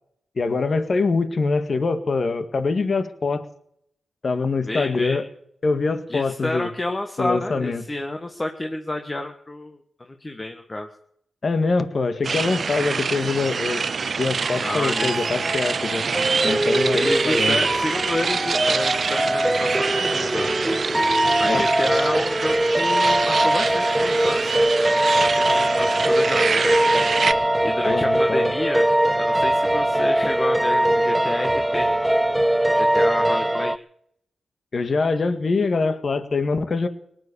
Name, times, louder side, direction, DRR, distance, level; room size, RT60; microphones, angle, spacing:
voice 1, 0.4-3.5 4.2-5.3 5.6-6.7 7.2-7.8 11.4-13.8 14.2-16.0 16.4-17.6 21.5-21.7 27.9-28.5 34.7-36.9, left 4 dB, 50° left, 11 dB, 1.8 m, -24 dB
voice 2, 4.7-5.2 6.1-10.9 14.5-15.1 16.9-20.5 21.4-24.6 25.2-26.8 27.6-28.9 29.1-31.9 32.7-33.7, left 2 dB, 30° left, 5 dB, 1.6 m, -30 dB
sound 1, 12.2-27.3, right 5 dB, 60° right, 0.7 m, -26 dB
sound 2, 14.4-33.8, right 1 dB, 10° right, 0.7 m, -21 dB
sound 3, 16.1-32.8, left 3 dB, 80° left, 3.8 m, -51 dB
19.0 x 9.9 x 6.9 m, 0.69 s
supercardioid pair, 45°, 0 cm